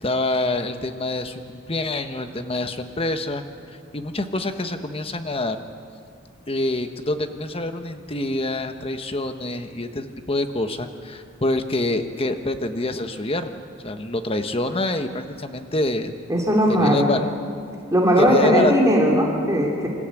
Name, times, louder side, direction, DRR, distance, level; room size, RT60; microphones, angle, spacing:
voice 1, 0.0-3.4 3.9-5.6 6.5-16.1 16.7-17.3 18.2-18.7, left 2 dB, 30° left, 8 dB, 1.2 m, -26 dB
voice 2, 16.3-17.1 17.9-19.9, equal, 15° right, -2 dB, 2.8 m, -18 dB
26.5 x 14.0 x 9.1 m, 2.3 s
head